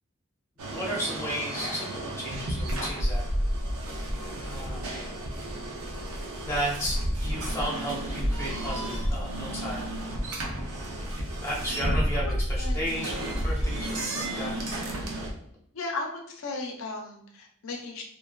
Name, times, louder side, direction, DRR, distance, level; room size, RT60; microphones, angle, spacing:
sound 1, 0.6-15.3, equal, 75° right, 0.5 m, -31 dB
voice 1, 0.7-3.2 4.4-4.9 6.4-10.0 10.7-11.0 11.4-14.6, equal, 10° left, -6 dB, 0.7 m, -34 dB
voice 2, 12.2-12.8 15.7-18.0, left 3 dB, 65° left, 2 dB, 0.5 m, -36 dB
2.6 x 2.3 x 2.2 m, 0.67 s
head